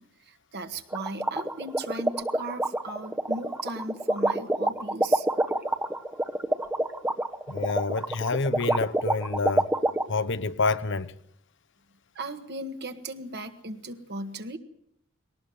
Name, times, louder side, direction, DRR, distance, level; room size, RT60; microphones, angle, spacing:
voice 1, 0.0-5.3 12.1-14.6, right 2 dB, 55° right, 1.7 m, -37 dB
sound 1, 0.9-10.0, right 1 dB, 10° right, 1.0 m, -26 dB
voice 2, 7.5-9.7 10.1-11.1, left 3 dB, 60° left, 1.0 m, -28 dB
21.0 x 18.5 x 7.9 m
head